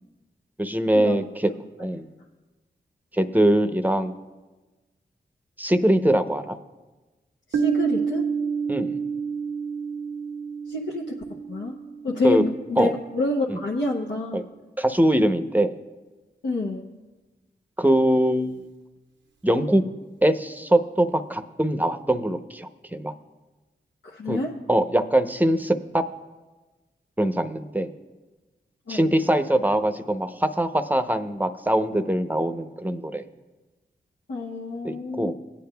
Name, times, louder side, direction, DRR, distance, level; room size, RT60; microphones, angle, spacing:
voice 1, 0.6-1.5 1.8-2.1 3.1-4.1 5.6-6.6 8.7-9.0 12.2-12.4 12.8-12.9 13.5-13.6 14.3-14.4 14.8-15.8 17.8-18.6 19.4-19.8 20.2-23.1 24.3-24.4 24.7-26.0 27.2-27.9 28.9-33.2 34.8-35.3, right 1 dB, 10° right, 9 dB, 0.7 m, -22 dB
voice 2, 7.5-8.3 10.7-11.8 12.0-14.4 16.4-16.9 24.0-24.5 28.9-29.3 34.3-35.3, left 2 dB, 80° left, -4 dB, 0.8 m, -28 dB
Piano, 7.5-12.9, right 6 dB, 75° right, 0.7 m, -29 dB
19.5 x 8.5 x 2.3 m, 1.2 s
cardioid pair, 45°, 19 cm